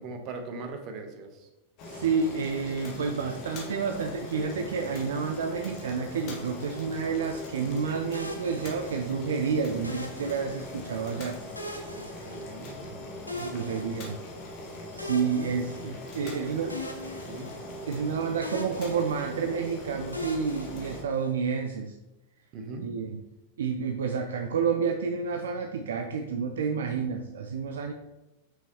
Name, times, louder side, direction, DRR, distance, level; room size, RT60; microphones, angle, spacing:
voice 1, 0.0-1.5 11.9-13.0 13.3-13.8 16.2-16.4 17.2-17.5 22.5-22.9, right 3 dB, 40° right, 5 dB, 1.0 m, -41 dB
Boiling, 1.8-21.0, left 1 dB, 40° left, 1.3 m, -41 dB
voice 2, 1.9-11.4 13.4-14.2 14.9-16.7 17.9-21.9 22.8-23.2 23.6-27.9, right 5 dB, 65° right, 5 dB, 0.4 m, -30 dB
sound 1, 8.1-9.3 9.8-11.0 11.5-12.9 13.3-14.5 15.0-16.3 16.7-18.1 18.4-19.6 20.1-21.5, left 1 dB, 85° left, 0.6 m, -41 dB
5.6 x 5.6 x 3.0 m, 0.99 s
figure-of-eight pair, 90°, 0 cm